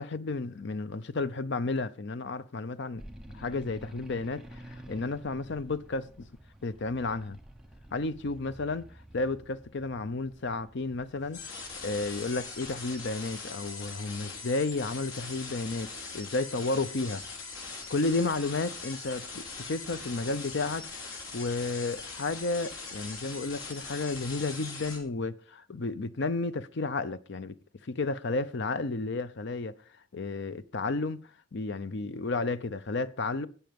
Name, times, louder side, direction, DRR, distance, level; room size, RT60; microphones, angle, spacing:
voice 1, 0.0-3.0 3.3-6.3 6.6-7.4 7.9-8.8 9.1-11.4 11.8-17.2 17.9-27.6 27.8-29.7 30.1-31.2 31.5-33.5, left 3 dB, 60° left, 0.6 m, -32 dB
sound 1, 3.0-12.9, right 1 dB, 5° right, 1.0 m, -50 dB
sound 2, 11.1-19.1, right 1 dB, 30° left, 3.8 m, -62 dB
sound 3, 11.3-25.0, left 4 dB, 80° left, 3.1 m, -41 dB
17.0 x 5.7 x 5.2 m
head